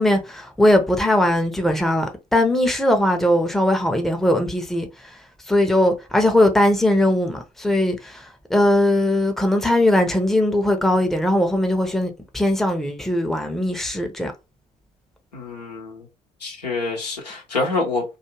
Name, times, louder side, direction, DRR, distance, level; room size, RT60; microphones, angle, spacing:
voice 1, 0.0-4.9 5.5-14.3, left 1 dB, ahead, 0.6 m, -20 dB
voice 2, 15.3-16.1 16.4-18.0, left 3 dB, 85° left, 0.8 m, -26 dB
2.4 x 2.3 x 3.0 m
figure-of-eight pair, 50°, 20 cm